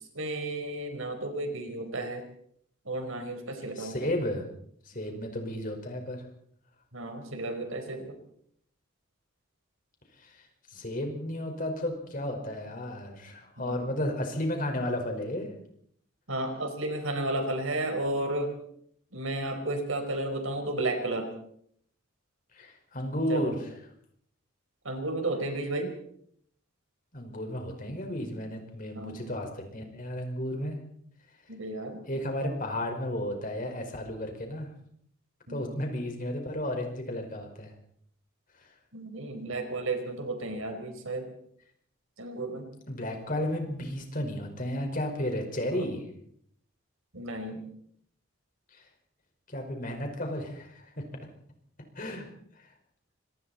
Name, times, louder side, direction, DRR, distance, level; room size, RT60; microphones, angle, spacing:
voice 1, 0.0-2.2 2.8-4.1 6.9-8.1 13.6-13.8 16.3-18.5 19.1-21.3 23.3-23.5 24.8-25.9 28.9-29.2 31.5-32.0 35.5-35.7 38.9-41.3 42.2-42.7 45.7-45.9 47.1-47.6, right 2 dB, 75° right, 5 dB, 4.6 m, -33 dB
voice 2, 3.8-4.4 4.9-6.3 10.2-15.5 22.5-23.8 27.1-30.8 32.1-34.7 35.5-37.7 38.6-38.7 42.9-46.1 48.7-48.8 49.5-51.0 52.0-52.3 52.6-52.7, left 1 dB, 40° left, 3 dB, 5.2 m, -33 dB
26.0 x 24.5 x 4.4 m, 0.66 s
head